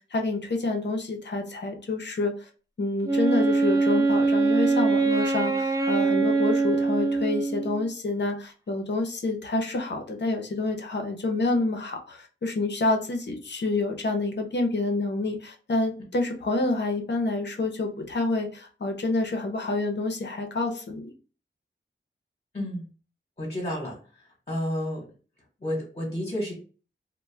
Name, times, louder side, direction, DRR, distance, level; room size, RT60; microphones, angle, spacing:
voice 1, 0.1-2.5 2.8-21.1, left 2 dB, 55° left, 3 dB, 0.6 m, -28 dB
Wind instrument woodwind instrument, 3.0-7.8, right 3 dB, 15° right, 0.4 m, -23 dB
voice 2, 23.4-24.0 24.5-25.0 25.6-26.5, equal, 35° left, -3 dB, 1.0 m, -30 dB
2.2 x 2.1 x 3.2 m, 0.38 s
wide cardioid pair, 60°, 21 cm